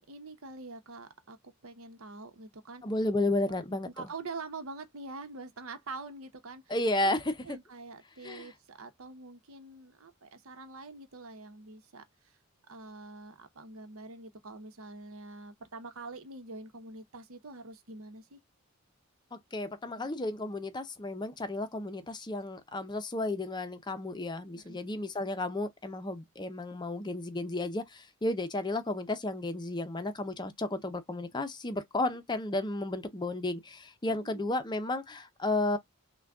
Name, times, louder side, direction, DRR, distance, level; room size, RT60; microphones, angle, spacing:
voice 1, 0.0-2.8 3.4-3.6 3.8-6.6 7.0-7.2 7.4-12.0 12.7-18.4 20.0-20.1 24.5-24.8 32.0-32.1 34.1-34.6, right 3 dB, 90° right, 0.9 m, -45 dB
voice 2, 2.8-3.9 6.7-7.6 8.2-8.5 19.3-35.8, left 2 dB, 20° left, 0.5 m, -33 dB
6.1 x 2.3 x 2.3 m
head